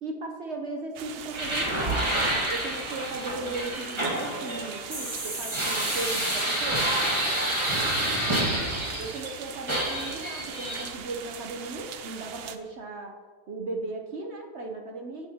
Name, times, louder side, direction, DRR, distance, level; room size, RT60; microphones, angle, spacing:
voice 1, 0.0-2.1 2.5-7.0 9.0-13.2 13.5-15.3, right 2 dB, 50° right, 2 dB, 0.9 m, -36 dB
sound 1, 0.9-12.6, right 8 dB, 80° right, 0.5 m, -41 dB
sound 2, 1.3-9.3 9.7-10.9, right 1 dB, 20° right, 1.5 m, -28 dB
15.5 x 6.3 x 2.9 m, 1.5 s
omnidirectional pair, 1.7 m